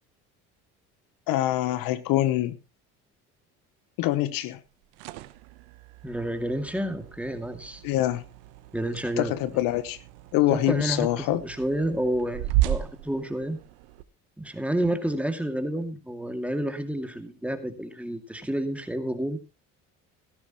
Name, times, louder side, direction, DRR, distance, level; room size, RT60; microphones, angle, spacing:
voice 1, 1.3-2.6 4.0-4.6 7.8-8.2 9.2-10.0 10.3-11.4, left 14 dB, 75° left, 1.0 m, -25 dB
sound 1, 4.7-14.0, right 15 dB, 90° right, 1.0 m, -34 dB
voice 2, 6.0-7.8 8.7-9.4 10.5-13.6 14.4-19.4, right 1 dB, 5° right, 2.3 m, -30 dB
16.0 x 12.5 x 3.0 m
supercardioid pair, 85°, 34 cm